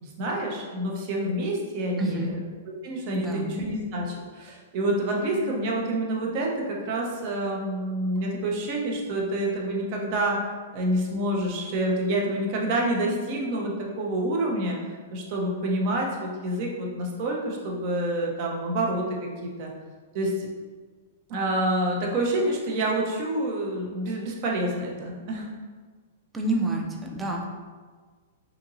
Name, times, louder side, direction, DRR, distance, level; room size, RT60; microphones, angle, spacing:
voice 1, 0.0-2.4 2.8-10.4 10.7-14.8 15.1-19.3 19.6-19.7 20.1-20.5 21.3-25.5, right 1 dB, 50° right, -1 dB, 0.7 m, -27 dB
voice 2, 2.0-2.3 3.1-3.5 26.3-27.5, right 2 dB, 15° right, 0 dB, 0.5 m, -28 dB
2.9 x 2.6 x 2.6 m, 1.5 s
hypercardioid pair, 115°, 0 cm